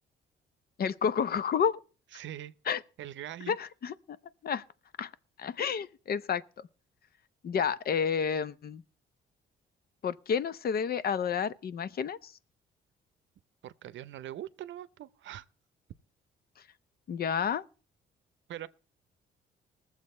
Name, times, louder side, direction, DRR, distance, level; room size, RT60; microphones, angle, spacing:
voice 1, 0.8-1.8 2.7-2.8 3.5-3.9 4.4-4.6 5.0-5.1 5.4-6.4 7.4-8.8 10.0-12.3 17.1-17.6, left 7 dB, 50° left, 0.7 m, -30 dB
voice 2, 2.1-2.5 3.0-3.6 13.6-15.4 18.5-18.7, right 12 dB, 70° right, 0.6 m, -42 dB
20.0 x 7.3 x 4.2 m
cardioid pair, 90°, 20 cm